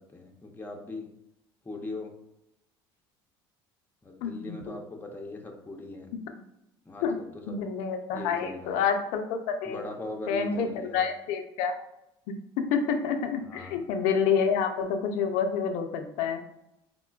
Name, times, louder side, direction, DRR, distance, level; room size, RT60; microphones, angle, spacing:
voice 1, 0.1-1.1 1.6-2.1 4.0-6.1 6.9-7.6 8.1-8.8 9.7-11.0 13.4-13.8, left 2 dB, 15° left, 2 dB, 0.6 m, -40 dB
voice 2, 4.2-4.7 7.0-7.2 7.5-9.8 10.3-11.8 12.6-16.4, left 6 dB, 70° left, 6 dB, 0.5 m, -28 dB
3.7 x 2.2 x 2.3 m, 0.84 s
hypercardioid pair, 70°, 13 cm